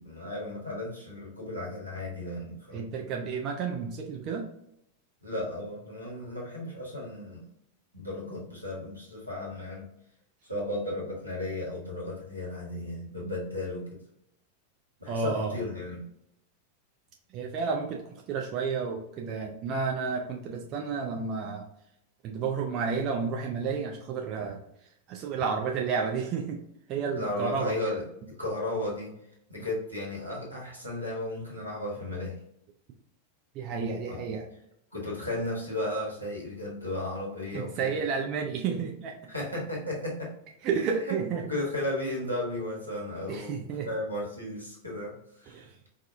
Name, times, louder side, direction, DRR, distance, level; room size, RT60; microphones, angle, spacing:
voice 1, 0.0-2.9 5.2-7.4 7.9-9.9 10.4-14.0 15.0-16.0 27.2-29.1 29.5-32.4 34.1-34.2 34.9-37.9 39.3-40.3 41.1-45.7, left 1 dB, 85° right, -4 dB, 1.2 m, -34 dB
voice 2, 2.7-4.5 15.1-15.6 17.3-21.7 22.2-24.6 25.1-26.6 26.9-27.7 33.5-34.5 37.5-39.1 40.6-41.4 43.3-43.9 45.5-45.6, right 5 dB, 35° right, 1 dB, 0.5 m, -31 dB
4.8 x 2.2 x 2.6 m, 0.77 s
figure-of-eight pair, 90°, 0 cm